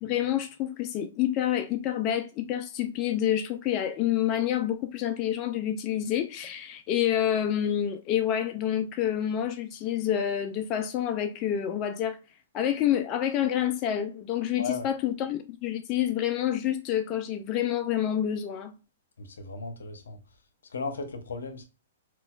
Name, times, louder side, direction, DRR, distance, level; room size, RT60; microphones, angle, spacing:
voice 1, 0.0-12.2 12.5-18.7, left 10 dB, 35° left, 0.3 m, -28 dB
voice 2, 14.6-14.9 19.2-20.2 20.7-21.6, left 4 dB, 85° left, 0.7 m, -36 dB
3.9 x 2.3 x 2.3 m
hypercardioid pair, 135°, 0 cm